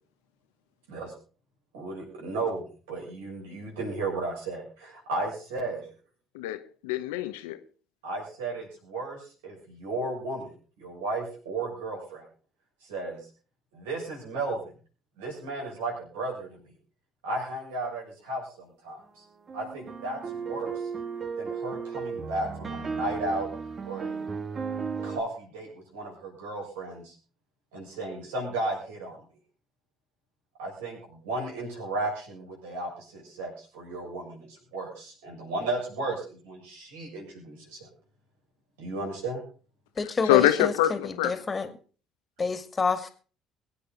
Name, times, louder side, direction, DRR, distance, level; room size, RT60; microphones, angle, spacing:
voice 1, 1.7-5.8 8.0-10.5 10.8-12.2 12.8-13.2 13.7-14.7 15.2-16.7 17.2-19.2 19.5-20.9 21.4-23.5 23.9-24.3 25.0-27.1 27.7-29.2 30.6-37.9 38.8-39.4, right 2 dB, 80° right, 6.7 m, -34 dB
voice 2, 6.3-7.6 40.2-41.4, left 13 dB, 80° left, 0.9 m, -25 dB
sound 1, 19.5-25.2, right 5 dB, 40° right, 1.8 m, -35 dB
voice 3, 40.0-41.7 42.4-43.1, left 4 dB, 30° left, 2.2 m, -28 dB
22.5 x 8.6 x 4.0 m
hypercardioid pair, 55°, 0 cm